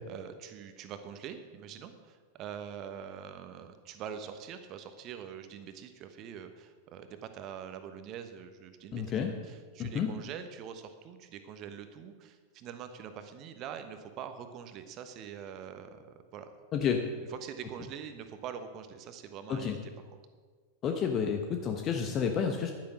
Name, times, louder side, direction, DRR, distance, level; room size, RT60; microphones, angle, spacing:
voice 1, 0.1-16.5 17.4-19.8 20.1-20.2, right 8 dB, 35° right, 9 dB, 1.2 m, -44 dB
voice 2, 8.9-9.3 9.8-10.1 16.7-17.0 19.5-19.8 20.8-22.7, left 7 dB, 30° left, 5 dB, 1.0 m, -30 dB
11.0 x 10.5 x 6.2 m, 1.5 s
figure-of-eight pair, 90°, 0 cm